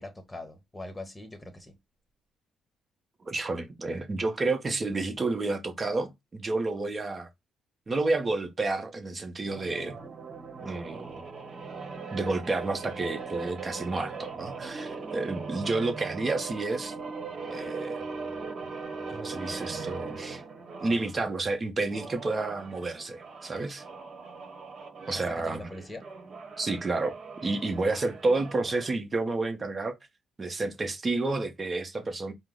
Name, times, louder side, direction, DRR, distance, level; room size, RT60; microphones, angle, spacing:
voice 1, 0.0-1.8 25.1-26.0, left 2 dB, 15° left, 1.2 m, -42 dB
voice 2, 3.2-7.3 7.9-10.0 10.6-11.2 12.1-16.9 17.5-18.0 19.1-20.4 20.8-23.8 25.1-25.7 26.6-27.1 27.4-29.9 30.4-32.3, right 3 dB, 30° right, 0.9 m, -30 dB
sound 1, 9.5-21.1 21.8-28.9, right 4 dB, 55° right, 1.2 m, -40 dB
4.5 x 2.1 x 3.8 m
cardioid pair, 90°, 0 cm